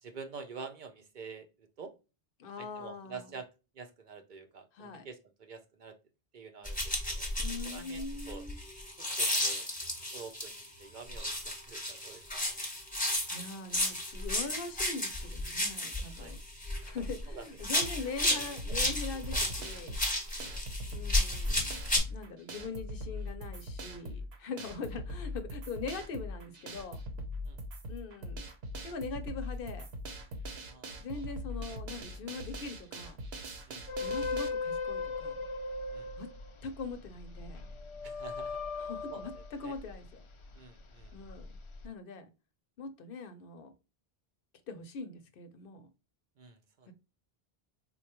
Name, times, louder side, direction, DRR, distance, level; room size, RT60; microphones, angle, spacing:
voice 1, 0.0-1.9 2.6-3.5 3.7-6.0 6.3-7.3 7.6-8.4 9.0-9.7 10.1-12.2 16.2-16.4 16.8-17.5 18.0-18.4 20.4-20.6 27.4-27.6 30.7-31.2 31.7-31.8 32.3-32.5 33.7-33.9 35.9-36.1 38.0-38.6 39.1-39.3 39.6-39.7 40.5-41.1 46.4-46.9, right 5 dB, 55° right, 0.6 m, -48 dB
voice 2, 2.4-3.3 4.7-5.1 7.4-8.6 13.3-16.4 16.8-20.0 20.9-27.0 27.9-28.5 28.8-29.9 31.0-33.2 34.0-35.4 36.2-36.3 36.6-37.6 38.8-40.1 41.1-41.5 41.8-42.3 42.8-43.7 44.7-45.9, left 4 dB, 65° left, 0.7 m, -42 dB
sound 1, 6.6-10.7 11.1-17.2 17.6-22.0, left 1 dB, 10° left, 0.9 m, -33 dB
sound 2, 17.8-34.5, left 1 dB, 80° right, 1.0 m, -41 dB
sound 3, 33.9-40.5 41.0-41.9, left 4 dB, 50° left, 0.3 m, -38 dB
4.1 x 2.2 x 2.9 m
omnidirectional pair, 1.0 m